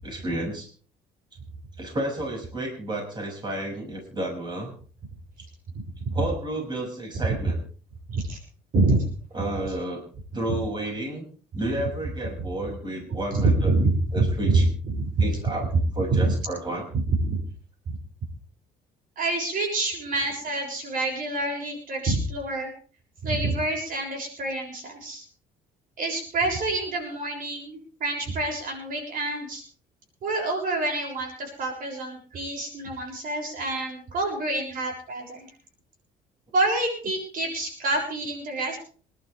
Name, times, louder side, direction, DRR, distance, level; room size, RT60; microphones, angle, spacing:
voice 1, 0.0-0.7 1.8-4.7 6.1-7.6 9.3-10.0 10.3-11.2 11.5-13.7 14.1-14.6 15.2-15.6 15.9-16.9, right 1 dB, 25° right, -1 dB, 6.7 m, -31 dB
voice 2, 5.7-6.2 8.1-8.4 8.7-9.1 13.3-15.1 16.1-16.3 16.9-17.4 17.9-18.0 19.2-22.7 23.2-25.2 26.0-29.6 30.2-35.5 36.5-38.8, right 2 dB, 55° right, 1 dB, 6.9 m, -27 dB
27.0 x 12.0 x 3.5 m, 0.42 s
cardioid pair, 110°, 17 cm